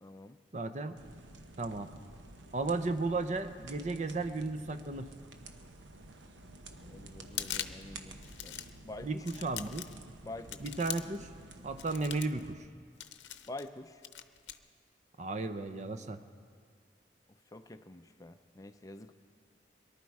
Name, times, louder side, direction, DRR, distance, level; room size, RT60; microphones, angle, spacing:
voice 1, 0.0-0.4 6.8-8.2 8.4-9.3 10.2-10.6 13.5-14.0 17.5-19.1, left 2 dB, 20° left, 8 dB, 0.4 m, -47 dB
voice 2, 0.5-0.9 1.6-1.9 2.5-5.1 9.0-9.9 10.6-11.3 11.6-12.7 15.2-16.2, right 3 dB, 40° right, 10 dB, 0.6 m, -34 dB
sound 1, 1.0-12.5, right 2 dB, 90° right, 1.0 m, -51 dB
sound 2, 7.2-7.9 8.2-8.8 9.3-10.0 10.5-11.2 11.8-12.4 13.0-13.7 14.0-14.6, left 11 dB, 75° left, 0.7 m, -41 dB
23.0 x 12.0 x 4.7 m, 2.1 s
head